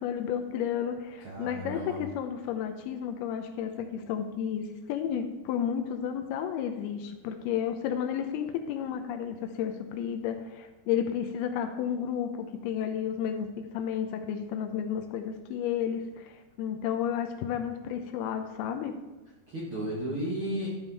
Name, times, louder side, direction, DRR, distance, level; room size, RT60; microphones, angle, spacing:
voice 1, 0.0-16.3 16.6-19.0, left 8 dB, 80° left, 6 dB, 2.5 m, -32 dB
voice 2, 1.2-2.0 19.5-20.7, equal, 55° right, -6 dB, 1.5 m, -33 dB
12.0 x 5.4 x 4.0 m, 1.1 s
omnidirectional pair, 4.7 m